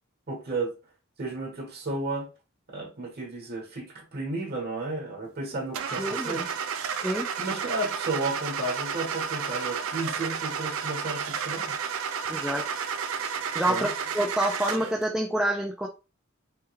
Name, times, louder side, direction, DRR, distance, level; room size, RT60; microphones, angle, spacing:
voice 1, 0.3-0.7 1.2-2.3 2.7-6.5 7.4-11.8 13.6-13.9, right 2 dB, 50° right, 1.0 m, -33 dB
Car / Engine starting, 5.7-15.0, right 6 dB, 85° right, 0.4 m, -32 dB
voice 2, 6.0-6.5 7.0-7.3 12.3-12.6 13.5-13.9 14.1-15.9, right 1 dB, 5° right, 0.3 m, -27 dB
3.4 x 2.2 x 3.1 m
head